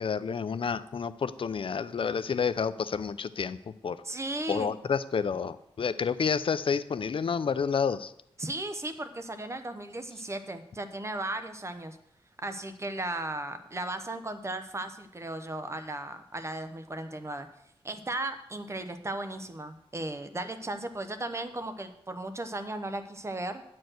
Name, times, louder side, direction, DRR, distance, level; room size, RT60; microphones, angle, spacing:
voice 1, 0.0-4.0 4.5-8.1, left 6 dB, 60° left, 13 dB, 0.5 m, -29 dB
voice 2, 4.0-4.8 8.4-12.0 12.4-17.5 17.8-23.6, right 2 dB, 25° right, 9 dB, 0.8 m, -36 dB
9.4 x 4.6 x 7.7 m, 0.78 s
wide cardioid pair, 115°, 10 cm